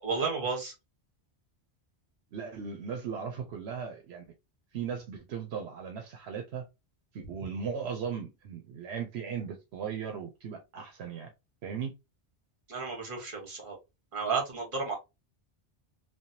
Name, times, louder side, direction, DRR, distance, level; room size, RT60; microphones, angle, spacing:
voice 1, 0.0-0.7 12.7-13.8 14.1-14.9, right 4 dB, 55° right, 1.4 m, -32 dB
voice 2, 2.3-4.3 4.7-6.6 7.1-11.3 11.6-12.0, right 7 dB, 80° right, 0.9 m, -37 dB
3.3 x 2.2 x 2.6 m
omnidirectional pair, 1.1 m